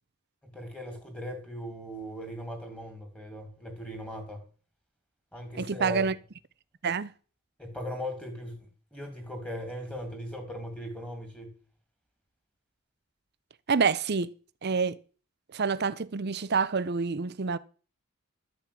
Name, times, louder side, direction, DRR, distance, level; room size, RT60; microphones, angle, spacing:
voice 1, 0.4-4.4 5.3-6.2 7.6-11.6, equal, 5° left, 2.4 m, -39 dB
voice 2, 5.6-6.1 6.8-7.1 13.7-14.3 14.6-15.0 15.5-17.6, right 5 dB, 45° right, 0.6 m, -27 dB
12.0 x 5.8 x 8.5 m
head